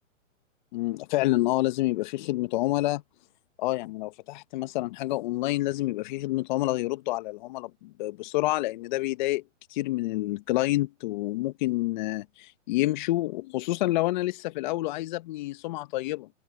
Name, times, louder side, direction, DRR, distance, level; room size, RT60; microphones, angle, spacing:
voice 1, 0.7-3.0 3.6-9.4 9.7-16.3, left 18 dB, 35° left, 1.2 m, -28 dB
hypercardioid pair, 140°, 38 cm